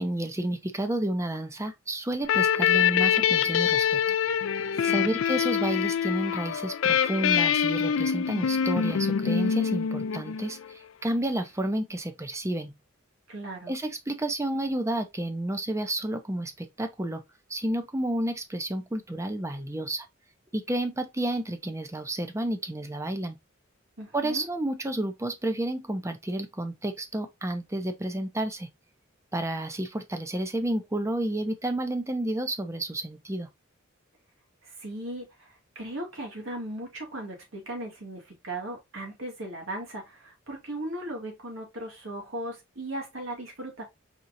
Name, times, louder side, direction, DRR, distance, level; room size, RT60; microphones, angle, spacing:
voice 1, 0.0-4.0 4.8-12.7 13.7-17.2 17.5-20.1 20.5-23.4 24.1-28.7 29.3-33.5, right 1 dB, 15° right, 0.6 m, -30 dB
sound 1, 2.2-10.7, left 8 dB, 70° left, 0.4 m, -25 dB
voice 2, 4.7-5.2 13.3-13.7 24.0-24.5 34.6-43.8, right 1 dB, 70° right, 2.1 m, -37 dB
4.4 x 3.7 x 2.6 m
head